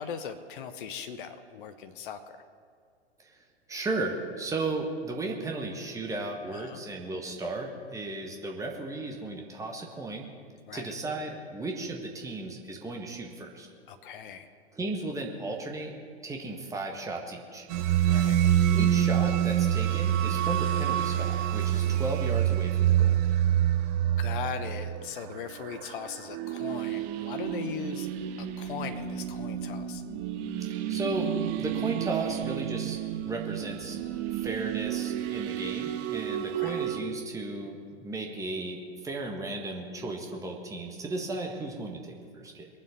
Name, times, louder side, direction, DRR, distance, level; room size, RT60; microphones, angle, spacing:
voice 1, 0.0-2.4 6.5-6.8 10.7-10.9 13.9-14.5 18.0-18.4 24.2-28.1 28.4-30.0 36.6-36.9, left 7 dB, 50° left, 10 dB, 1.0 m, -39 dB
voice 2, 3.7-10.3 10.7-13.7 14.7-15.9 16.2-17.6 18.7-23.1 30.7-31.3 31.6-33.0 33.2-34.0 34.3-42.7, right 2 dB, 10° right, 1 dB, 1.6 m, -35 dB
sound 1, 17.7-37.0, right 11 dB, 40° right, 1.0 m, -28 dB
22.0 x 7.8 x 5.7 m, 2.1 s
figure-of-eight pair, 105°, 33 cm